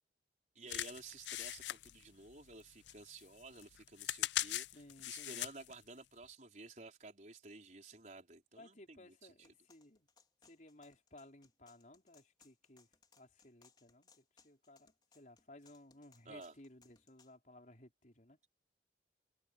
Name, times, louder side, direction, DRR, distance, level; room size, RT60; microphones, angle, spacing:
voice 1, 0.5-9.3 16.2-16.5, right 3 dB, 45° right, 4.7 m, -53 dB
sound 1, 0.7-2.6 2.9-5.7 6.2-6.3, left 14 dB, 85° left, 0.4 m, -40 dB
voice 2, 4.7-5.5 8.5-10.1 10.5-12.9 13.2-18.4, left 1 dB, 45° left, 4.3 m, -59 dB
sound 2, 9.4-17.3, left 5 dB, 25° left, 4.0 m, -69 dB
head